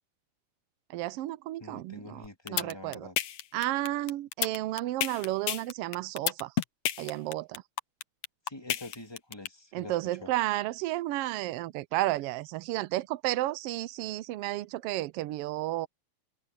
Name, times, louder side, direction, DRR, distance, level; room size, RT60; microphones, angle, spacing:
voice 1, 0.9-2.2 2.5-3.1 3.5-6.5 7.0-7.6 9.7-15.9, right 16 dB, 85° right, 1.3 m, -32 dB
voice 2, 1.6-3.2 8.5-10.3, left 2 dB, 10° left, 1.8 m, -45 dB
sound 1, 2.2-9.5, left 11 dB, 65° left, 2.1 m, -30 dB
omnidirectional pair, 3.3 m